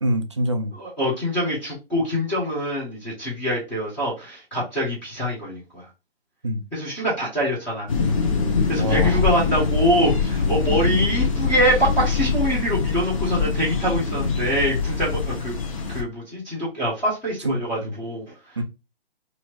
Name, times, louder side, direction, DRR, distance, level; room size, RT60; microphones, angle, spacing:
voice 1, 0.0-0.7 6.4-6.6 8.8-9.2 17.4-17.9 18.6-18.7, right 1 dB, 30° right, 0.4 m, -25 dB
voice 2, 0.7-5.8 6.7-7.9 8.7-15.6 15.9-18.2, equal, 5° left, 0.8 m, -24 dB
sound 1, 7.9-16.0, left 5 dB, 30° left, 0.9 m, -23 dB
4.2 x 2.8 x 3.0 m
figure-of-eight pair, 150°, 32 cm